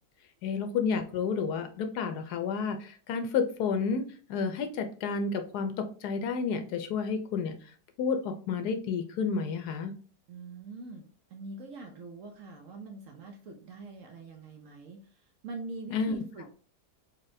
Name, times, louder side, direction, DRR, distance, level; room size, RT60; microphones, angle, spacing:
voice 1, 0.4-4.0 4.3-7.6 8.0-9.9 15.9-16.2, left 5 dB, 75° left, 7 dB, 1.1 m, -30 dB
voice 2, 10.3-16.5, right 3 dB, 65° right, 4 dB, 0.9 m, -44 dB
4.0 x 3.2 x 2.6 m, 0.41 s
omnidirectional pair, 1.8 m